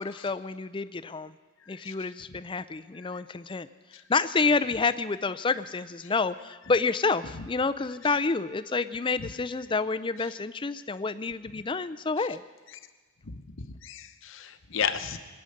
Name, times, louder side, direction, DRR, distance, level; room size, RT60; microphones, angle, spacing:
voice 1, 0.0-1.3 1.7-3.7 4.1-12.4, left 4 dB, 25° left, 13 dB, 0.4 m, -28 dB
voice 2, 13.3-15.2, left 7 dB, 60° left, 9 dB, 0.9 m, -33 dB
23.0 x 9.7 x 6.5 m, 1.4 s
head